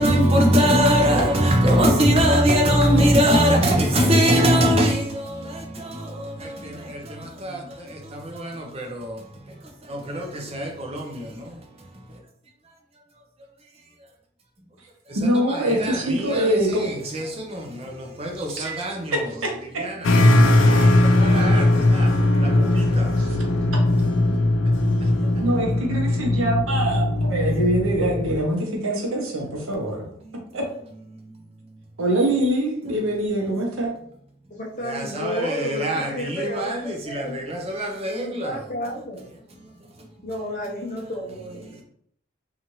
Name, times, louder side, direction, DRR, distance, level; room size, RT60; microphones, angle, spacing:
voice 1, 0.0-12.2 15.1-19.3 19.8-20.1 20.6-23.4 24.8-25.4 30.3-30.4 34.8-38.6, equal, 30° right, 0.5 m, -23 dB
voice 2, 15.1-16.9 18.6-19.9 23.2-23.4 25.4-30.0 30.5-30.6 32.0-33.9, right 1 dB, 85° right, 0.8 m, -24 dB
sound 1, 20.0-28.4, left 1 dB, 70° left, 0.4 m, -19 dB
voice 3, 34.5-37.5 38.2-39.2 40.2-41.8, equal, 40° left, 0.7 m, -32 dB
2.7 x 2.4 x 3.0 m
head